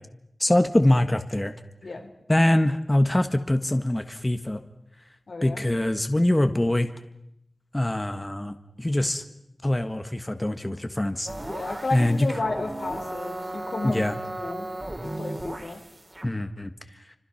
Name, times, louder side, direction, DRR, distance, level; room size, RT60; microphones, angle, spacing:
voice 1, 0.4-1.5 2.3-4.6 5.4-6.9 7.7-9.2 9.6-11.3 11.9-12.3 13.8-14.2 16.2-16.7, left 1 dB, 20° left, 8 dB, 1.5 m, -23 dB
voice 2, 5.3-5.7 11.5-14.0 14.4-14.7 15.0-15.8, left 3 dB, 85° left, 5 dB, 3.5 m, -32 dB
sound 1, 11.3-16.3, right 1 dB, 30° right, 3.8 m, -35 dB
29.5 x 26.0 x 5.9 m, 0.82 s
wide cardioid pair, 60°, 0 cm